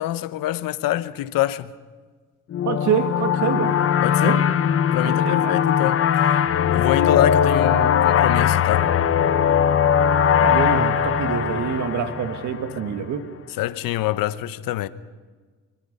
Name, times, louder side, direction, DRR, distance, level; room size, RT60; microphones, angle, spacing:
voice 1, 0.0-1.7 4.0-4.4 4.9-6.1 6.7-8.9 13.6-14.9, left 14 dB, 75° left, 1.0 m, -25 dB
sound 1, 2.5-12.9, left 8 dB, 40° left, 0.9 m, -20 dB
voice 2, 2.7-3.8 4.2-4.4 5.0-5.6 7.5-8.0 10.4-13.3, right 7 dB, 60° right, 1.9 m, -26 dB
25.5 x 24.5 x 5.5 m
cardioid pair, 135°, 34 cm